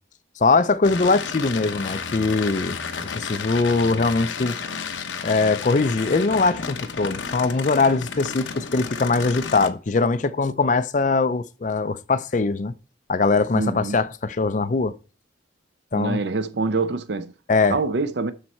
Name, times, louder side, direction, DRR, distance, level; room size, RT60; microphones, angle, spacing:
voice 1, 0.4-4.5 5.2-12.7 13.1-15.0 15.9-16.2 17.5-17.8, left 3 dB, 40° left, 0.5 m, -21 dB
sound 1, 0.8-9.7, left 5 dB, 80° left, 0.8 m, -32 dB
voice 2, 13.5-14.0 15.9-17.3 17.7-18.3, right 3 dB, 65° right, 0.6 m, -25 dB
12.5 x 4.2 x 4.4 m
head